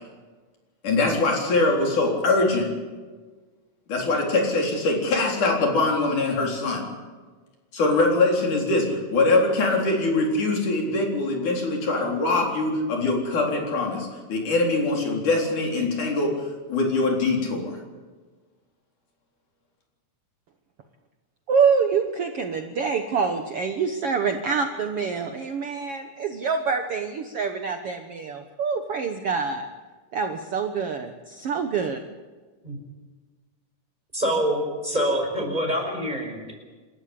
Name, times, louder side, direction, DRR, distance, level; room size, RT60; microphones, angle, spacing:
voice 1, 0.8-2.7 3.9-6.9 7.7-17.8, left 2 dB, 70° left, 1 dB, 5.5 m, -23 dB
voice 2, 21.5-29.7 30.1-32.0, right 5 dB, 60° right, 6 dB, 1.8 m, -26 dB
voice 3, 34.1-36.5, equal, 10° right, 1 dB, 5.4 m, -25 dB
28.0 x 14.0 x 8.5 m, 1.4 s
omnidirectional pair, 3.8 m